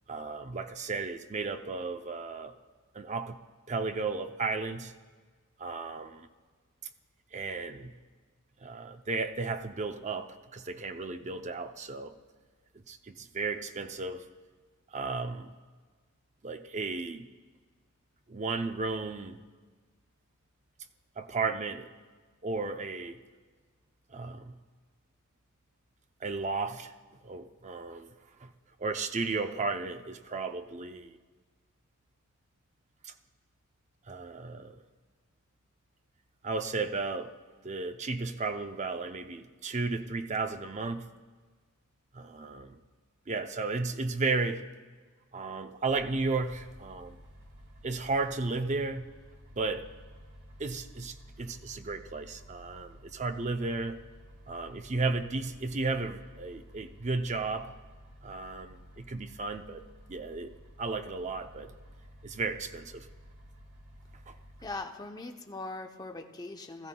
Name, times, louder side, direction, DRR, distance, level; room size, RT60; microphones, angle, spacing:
voice 1, 0.1-2.6 2.9-3.4 3.7-4.9 5.6-6.3 7.3-7.9 8.6-12.2 12.9-14.2 14.9-15.5 16.4-17.3 18.3-19.4 21.2-21.9 22.4-23.2 24.1-24.5 26.2-26.9 27.2-28.1 28.4-28.5 28.8-31.2 33.0-33.1 34.1-34.8 36.4-37.3 37.6-41.1 42.1-42.8 43.3-44.6 45.3-47.2 47.8-49.1 49.5-49.9 50.6-54.0 54.5-57.7 58.2-60.5 60.8-61.7 62.2-63.1 64.3-64.4, right 3 dB, 35° right, 8 dB, 0.6 m, -34 dB
sound 1, 45.9-64.8, equal, 60° right, 2.1 m, -53 dB
voice 2, 64.6-66.9, left 2 dB, 20° left, 4 dB, 0.7 m, -40 dB
21.0 x 14.0 x 2.3 m, 1.5 s
head